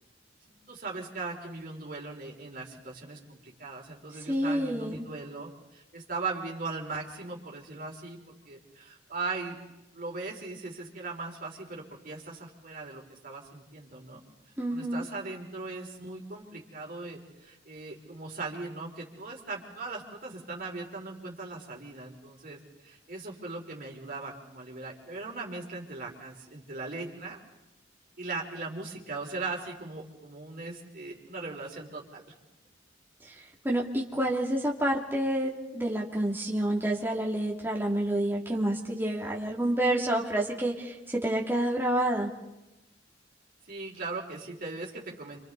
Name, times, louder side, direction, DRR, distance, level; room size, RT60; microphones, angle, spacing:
voice 1, 0.5-8.2 8.5-9.6 9.9-14.2 14.7-27.4 28.2-32.2 43.7-45.4, right 3 dB, 45° right, -1 dB, 4.0 m, -39 dB
voice 2, 4.3-5.1 14.6-15.1 33.6-42.3, right 1 dB, 10° right, -2 dB, 2.7 m, -28 dB
29.5 x 26.5 x 4.1 m, 0.94 s
head